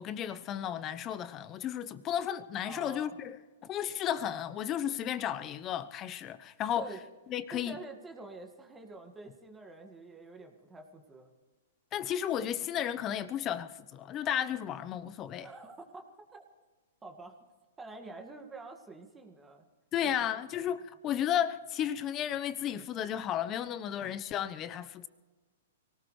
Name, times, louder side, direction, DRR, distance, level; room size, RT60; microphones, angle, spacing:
voice 1, 0.0-3.4 3.6-6.9 7.3-7.8 11.9-15.5 19.9-25.1, left 10 dB, 30° left, 1.0 m, -33 dB
voice 2, 2.6-3.2 6.8-7.0 7.5-11.3 15.4-16.4 17.0-17.4 17.8-19.7 20.1-20.4, right 3 dB, 15° right, 2.0 m, -47 dB
24.0 x 18.0 x 3.3 m
hypercardioid pair, 120°, 0 cm